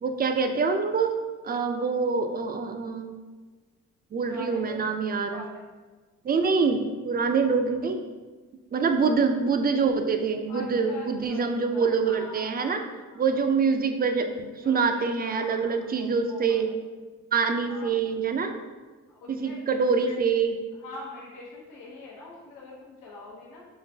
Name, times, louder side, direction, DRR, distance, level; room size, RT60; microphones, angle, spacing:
voice 1, 0.0-1.1 1.4-3.1 4.1-5.4 6.2-8.0 8.7-12.8 13.2-16.7 17.3-18.6 19.3-20.5, right 5 dB, 30° right, 6 dB, 0.4 m, -25 dB
voice 2, 4.2-4.8 5.3-5.6 6.6-6.7 7.3-7.5 10.5-13.5 14.6-16.7 17.7-18.0 19.1-19.8 20.1-20.3 20.8-23.7, left 2 dB, 85° left, -4 dB, 0.8 m, -44 dB
3.8 x 3.2 x 2.7 m, 1.3 s
cardioid pair, 75°, 31 cm